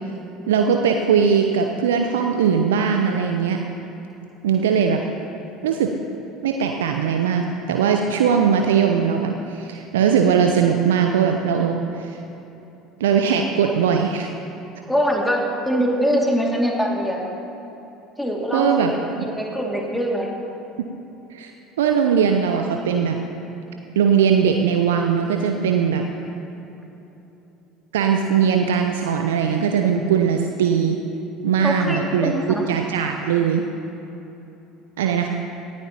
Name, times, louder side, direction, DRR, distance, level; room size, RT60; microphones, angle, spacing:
voice 1, 0.5-3.6 4.4-5.0 5.6-5.9 6.4-12.2 13.0-14.3 18.5-18.9 21.3-21.5 21.8-23.2 24.0-26.0 27.9-31.0 31.4-32.3 32.7-33.6 35.0-35.3, right 7 dB, 75° right, 3 dB, 0.6 m, -20 dB
voice 2, 14.9-17.3 18.2-20.4 31.6-32.6, equal, 5° left, -1 dB, 2.3 m, -23 dB
18.5 x 13.5 x 2.9 m, 3.0 s
figure-of-eight pair, 65°, 0 cm